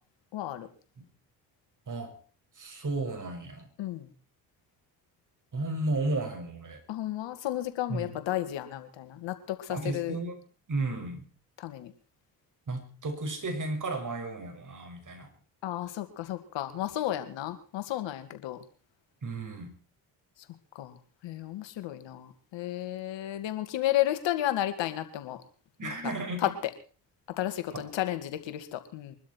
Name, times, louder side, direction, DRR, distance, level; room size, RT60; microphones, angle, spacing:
voice 1, 0.3-0.7 3.8-4.1 6.9-10.2 11.6-11.9 15.6-18.6 20.8-21.0 21.2-25.4 25.8-26.1 26.4-26.5 27.4-29.2, left 13 dB, 65° left, 9 dB, 2.3 m, -32 dB
voice 2, 1.9-2.2 2.5-3.7 5.5-6.8 7.9-8.2 9.7-10.4 10.7-11.3 12.7-15.3 19.2-19.7 25.8-26.5 27.7-27.9, right 2 dB, 40° right, 5 dB, 6.3 m, -33 dB
23.5 x 12.5 x 4.6 m, 0.39 s
hypercardioid pair, 55°, 47 cm